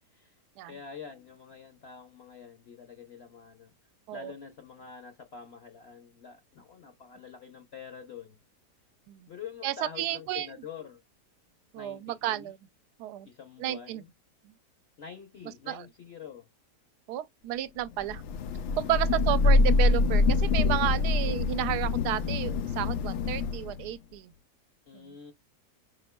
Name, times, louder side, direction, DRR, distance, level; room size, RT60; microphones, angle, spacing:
voice 1, 0.0-0.4 0.7-3.7 4.1-8.4 9.3-11.0 11.8-12.5 13.2-14.1 15.0-16.5 19.3-19.5 24.9-25.3, left 6 dB, 55° left, 0.8 m, -46 dB
voice 2, 9.6-10.5 11.7-12.6 13.0-13.3 13.6-14.0 15.7-15.9 17.1-18.2 18.8-24.3 24.9-25.2, right 12 dB, 75° right, 1.1 m, -32 dB
Thunder / Rain, 18.1-23.9, left 3 dB, 85° left, 0.6 m, -25 dB
5.1 x 4.3 x 2.2 m
omnidirectional pair, 1.8 m